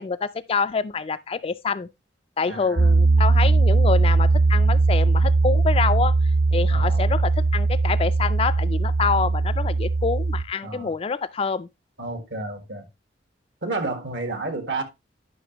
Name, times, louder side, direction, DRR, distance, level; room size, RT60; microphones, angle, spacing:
voice 1, 0.0-1.9 2.4-6.1 6.5-11.7, left 5 dB, 30° left, 0.3 m, -26 dB
voice 2, 2.5-2.9 6.7-7.1 10.6-10.9 12.0-12.9 13.6-14.8, right 2 dB, 75° right, 1.5 m, -31 dB
Piano, 2.8-10.4, right 3 dB, 50° right, 0.7 m, -19 dB
9.5 x 5.8 x 2.9 m
head